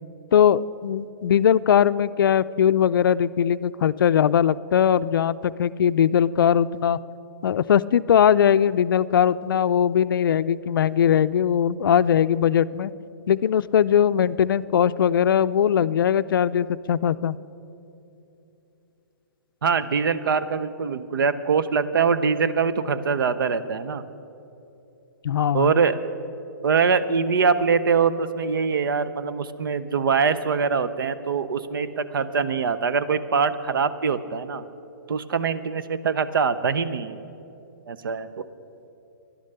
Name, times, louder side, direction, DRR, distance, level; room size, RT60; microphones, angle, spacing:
voice 1, 0.3-7.0 7.4-12.9 13.3-17.4 25.2-25.8, left 9 dB, 80° left, 15 dB, 0.4 m, -20 dB
voice 2, 19.6-24.0 25.5-26.0 26.6-34.6 35.1-37.2 37.9-38.3, right 5 dB, 80° right, 13 dB, 0.7 m, -23 dB
12.0 x 11.0 x 6.7 m, 2.8 s
hypercardioid pair, 165°, 11 cm